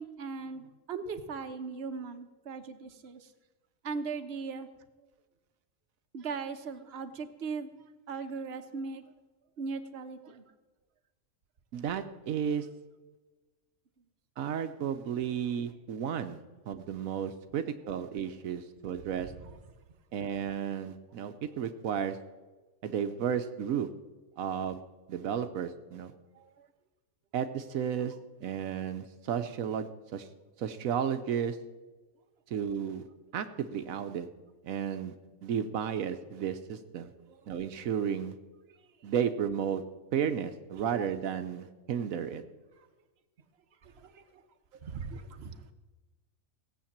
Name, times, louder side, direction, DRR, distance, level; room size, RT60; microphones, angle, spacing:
voice 1, 0.0-3.3 3.8-4.7 6.1-7.7 8.1-9.0 9.6-10.4 19.2-19.5 26.3-26.7 37.3-37.6 40.8-41.0 43.8-44.4 44.8-45.7, right 5 dB, 50° right, 7 dB, 1.2 m, -39 dB
voice 2, 11.7-12.7 14.4-16.4 16.7-19.3 20.1-22.2 22.8-23.9 24.4-24.8 25.1-26.1 27.3-28.1 28.4-30.3 30.6-31.6 32.5-33.0 33.3-34.3 34.6-35.1 35.4-37.1 37.5-38.3 39.0-39.8 40.1-42.4, right 8 dB, 80° right, 9 dB, 1.2 m, -33 dB
17.0 x 8.1 x 7.3 m, 1.2 s
omnidirectional pair, 1.4 m